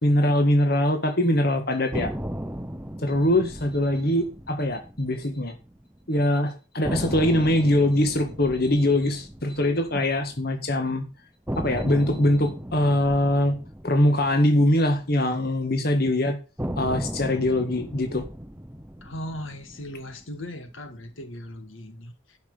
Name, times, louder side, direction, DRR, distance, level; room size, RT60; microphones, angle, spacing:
voice 1, 0.0-2.1 3.0-5.5 6.1-11.0 11.6-13.6 13.8-16.4 16.8-18.2, left 1 dB, 50° left, 1.8 m, -22 dB
sound 1, 1.9-6.0 6.3-6.4 6.8-10.9 11.5-15.8 16.6-20.9, equal, 10° right, 0.7 m, -36 dB
voice 2, 19.0-22.4, left 1 dB, 75° left, 1.9 m, -38 dB
11.5 x 6.0 x 6.8 m
head